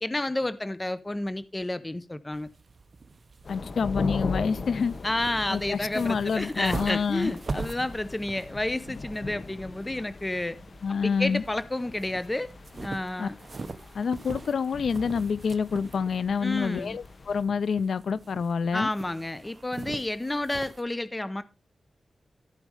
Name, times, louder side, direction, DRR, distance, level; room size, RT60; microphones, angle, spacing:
voice 1, 0.0-2.5 5.0-10.6 11.0-12.5 12.7-13.4 16.4-17.0 18.7-21.4, left 1 dB, 20° left, 0.8 m, -30 dB
sound 1, 2.3-20.8, right 3 dB, 45° right, 1.0 m, -42 dB
sound 2, 3.4-17.4, left 3 dB, 55° left, 0.9 m, -40 dB
voice 2, 3.5-4.9 5.5-7.3 10.8-11.4 13.2-13.3 13.9-18.9, left 6 dB, 80° left, 0.5 m, -27 dB
14.5 x 5.1 x 4.8 m
wide cardioid pair, 90°, 0 cm